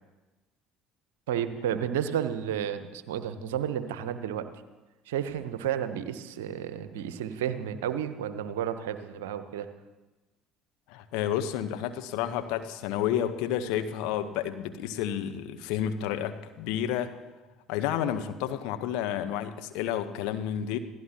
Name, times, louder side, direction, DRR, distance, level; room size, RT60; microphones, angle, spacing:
voice 1, 1.3-4.5 5.1-9.7, right 9 dB, 70° right, 11 dB, 0.9 m, -32 dB
voice 2, 10.9-17.1 17.7-20.8, left 10 dB, 65° left, 8 dB, 1.1 m, -30 dB
27.0 x 17.0 x 3.0 m, 1.2 s
figure-of-eight pair, 60°, 0 cm